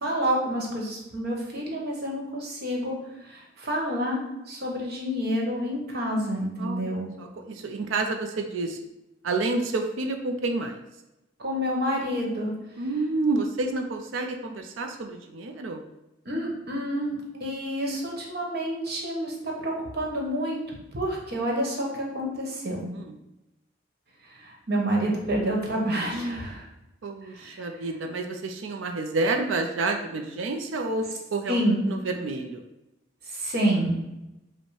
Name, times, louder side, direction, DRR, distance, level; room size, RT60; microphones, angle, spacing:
voice 1, 0.0-3.0 3.3-7.1 11.4-12.5 16.2-22.8 24.4-26.7 27.3-27.6 31.5-31.8 33.3-34.0, equal, 55° right, -1 dB, 1.1 m, -28 dB
voice 2, 6.6-6.9 7.2-8.8 9.2-10.8 12.8-15.8 17.3-17.5 22.9-23.2 26.1-26.6 27.0-31.0 31.3-31.6 31.9-32.6, right 3 dB, 90° right, 4 dB, 0.5 m, -29 dB
5.2 x 2.1 x 4.8 m, 0.95 s
head